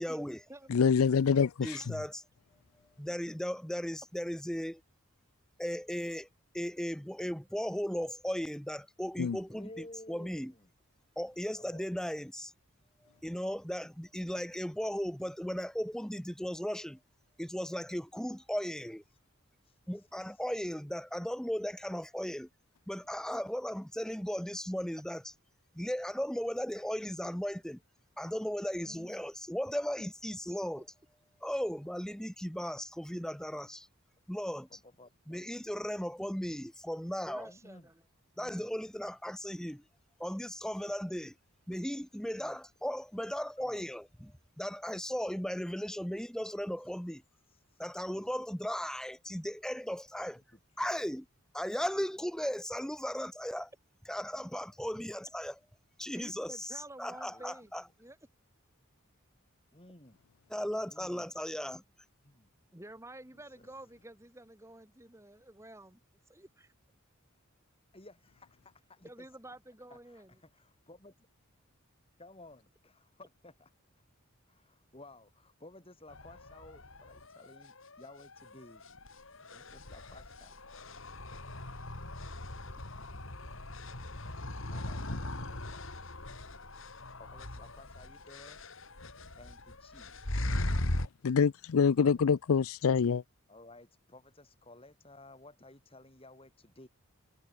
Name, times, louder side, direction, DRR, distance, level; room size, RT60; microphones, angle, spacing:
voice 1, 0.0-0.4 1.6-2.2 3.0-4.8 5.6-6.3 6.5-10.5 11.2-12.5 13.2-17.0 17.4-19.0 19.9-22.5 22.9-25.2 25.7-27.8 28.2-30.8 31.4-33.9 34.3-34.7 35.3-37.5 38.4-39.8 40.2-41.3 41.7-47.2 47.8-50.4 50.8-51.2 51.5-53.7 54.1-55.6 56.0-57.8 60.5-61.8, equal, 5° left, 0.9 m, -36 dB
voice 2, 0.7-1.9 9.2-9.4 91.0-93.2, left 6 dB, 80° left, 0.4 m, -26 dB
voice 3, 9.5-10.7 11.5-11.9 19.1-19.2 19.6-20.6 28.8-29.3 34.7-35.4 37.4-37.9 38.4-38.7 40.8-40.9 42.4-42.6 43.6-43.9 46.8-46.9 47.5-48.4 50.2-50.9 54.2-54.5 57.2-57.7 59.7-60.2 60.9-61.3 62.2-62.5 63.3-63.7 67.9-69.4 69.9-71.3 72.2-73.7 74.5-78.8 79.5-80.5 84.6-85.9 87.2-88.6 89.3-90.5 93.5-96.9, left 2 dB, 25° left, 3.7 m, -56 dB
voice 4, 30.5-30.8 37.3-38.0 56.1-57.7 58.0-58.2 62.7-66.0 66.3-66.7 69.0-70.3 82.7-82.8, right 1 dB, 15° right, 1.6 m, -50 dB
sound 1, 76.1-91.1, left 1 dB, 65° left, 2.8 m, -39 dB
head